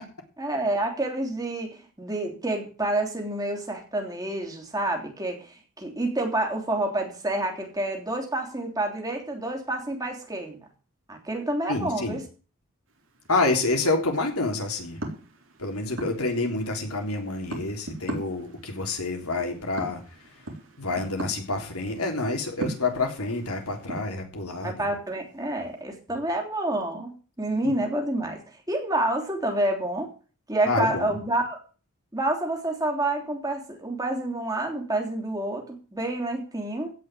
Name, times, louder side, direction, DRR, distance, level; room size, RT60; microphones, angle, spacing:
voice 1, 0.4-10.6 11.1-12.2 24.6-28.4 28.7-30.1 30.5-31.6 32.1-36.9, right 1 dB, 15° right, 2 dB, 3.3 m, -28 dB
voice 2, 11.7-12.2 13.3-15.0 15.6-20.0 20.8-24.9 30.7-31.2, left 3 dB, 90° left, 3 dB, 3.6 m, -28 dB
sound 1, 12.9-24.0, right 1 dB, 60° right, 3.6 m, -40 dB
16.0 x 5.6 x 9.1 m, 0.38 s
head